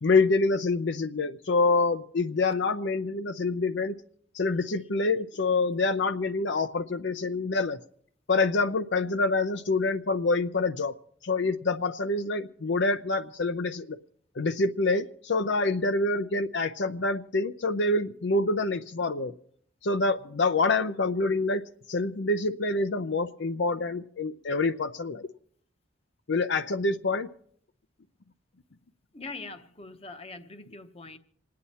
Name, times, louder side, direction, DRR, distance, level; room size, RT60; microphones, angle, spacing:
voice 1, 0.0-4.0 4.3-7.8 8.3-10.9 11.2-14.0 14.4-19.3 19.8-25.3 26.3-27.3, left 3 dB, 65° left, 0.6 m, -26 dB
voice 2, 29.1-31.2, left 3 dB, 30° left, 0.9 m, -42 dB
27.5 x 9.6 x 4.2 m
head